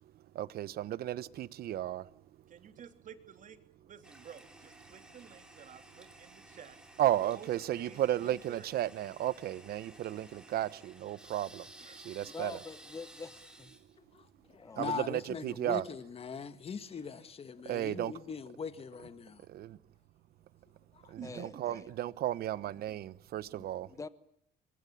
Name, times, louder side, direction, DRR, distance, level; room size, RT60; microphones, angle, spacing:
voice 1, 0.3-2.0 7.0-11.6 12.0-12.6 14.8-15.8 17.6-18.1 19.5-19.8 21.1-23.9, right 13 dB, 65° right, 1.1 m, -34 dB
voice 2, 2.5-3.6 3.9-6.8 7.2-7.5 7.8-8.7 11.8-12.3 14.8-14.9 21.2-21.6, right 8 dB, 50° right, 3.3 m, -52 dB
Toilet flush, 4.0-16.7, right 1 dB, 5° right, 3.7 m, -56 dB
voice 3, 12.2-13.7 14.5-14.9 21.2-21.9 23.5-24.1, left 4 dB, 20° left, 1.2 m, -46 dB
voice 4, 14.0-19.4 20.9-21.1, left 6 dB, 35° left, 1.7 m, -41 dB
28.0 x 23.5 x 8.7 m
cardioid pair, 110°, 17 cm